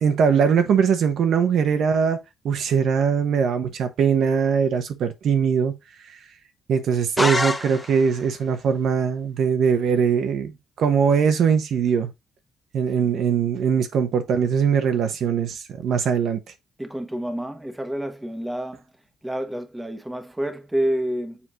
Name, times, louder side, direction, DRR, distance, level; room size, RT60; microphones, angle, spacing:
voice 1, 0.0-5.7 6.1-6.2 6.7-12.1 12.7-16.4, right 6 dB, 70° right, 1.1 m, -21 dB
sound 1, 7.2-8.3, left 2 dB, 15° left, 0.7 m, -25 dB
voice 2, 16.8-18.8 19.2-21.4, right 1 dB, 10° right, 1.1 m, -28 dB
7.2 x 4.2 x 3.1 m
cardioid pair, 90°, 0 cm